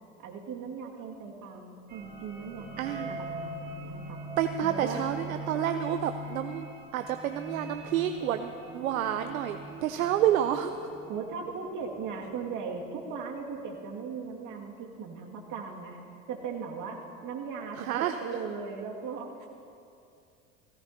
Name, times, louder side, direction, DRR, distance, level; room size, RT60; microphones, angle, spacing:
voice 1, 0.2-4.2 4.6-5.0 11.1-16.0 16.3-19.5, right 5 dB, 50° right, 0 dB, 2.3 m, -38 dB
sound 1, 1.9-13.2, right 1 dB, 20° right, 2.2 m, -42 dB
voice 2, 2.8-3.2 4.4-6.7 6.9-10.9 17.8-18.2, right 10 dB, 85° right, 8 dB, 0.7 m, -29 dB
19.0 x 16.5 x 2.9 m, 2.6 s
hypercardioid pair, 80°, 41 cm